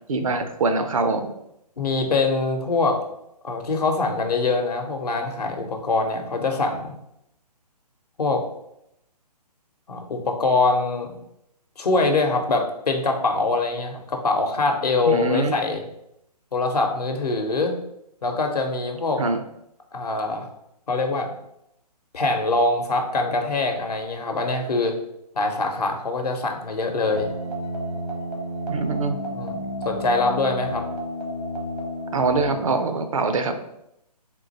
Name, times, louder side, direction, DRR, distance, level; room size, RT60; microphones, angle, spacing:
voice 1, 0.1-1.3 15.1-15.5 19.2-19.4 28.7-29.2 32.1-33.6, right 3 dB, 55° right, 7 dB, 0.6 m, -23 dB
voice 2, 1.8-3.0 3.4-6.9 8.2-8.4 9.9-11.2 11.8-15.8 16.5-17.8 18.2-19.2 19.9-20.5 20.9-21.3 22.1-24.9 25.4-27.3 29.3-30.9, left 3 dB, 70° left, 4 dB, 0.8 m, -23 dB
sound 1, 27.1-32.8, equal, 70° right, 1.3 m, -31 dB
3.8 x 2.5 x 4.0 m, 0.79 s
figure-of-eight pair, 135°, 21 cm